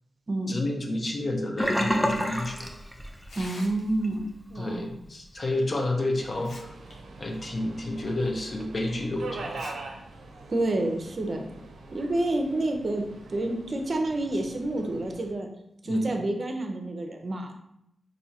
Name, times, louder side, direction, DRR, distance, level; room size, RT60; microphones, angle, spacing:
voice 1, 0.5-2.7 4.6-6.7 7.2-9.6 15.9-16.1, left 1 dB, 45° left, 1 dB, 0.7 m, -30 dB
Sink (filling or washing), 1.6-3.6 3.9-4.2 4.6-4.7, equal, ahead, 0.5 m, -28 dB
Tearing, 3.2-4.1 5.6-5.7 6.2-6.9 7.3-7.4 8.1-8.2 9.4-9.7 10.1-10.2 11.1-11.3, left 2 dB, 85° left, 0.8 m, -46 dB
voice 2, 3.4-4.9 10.5-11.4 11.9-15.5 15.8-17.5, right 2 dB, 50° right, 3 dB, 0.6 m, -29 dB
Subway metro underground, 6.2-15.3, right 3 dB, 90° right, 0.5 m, -43 dB
4.4 x 2.6 x 2.8 m, 0.77 s
cardioid pair, 80°, 0 cm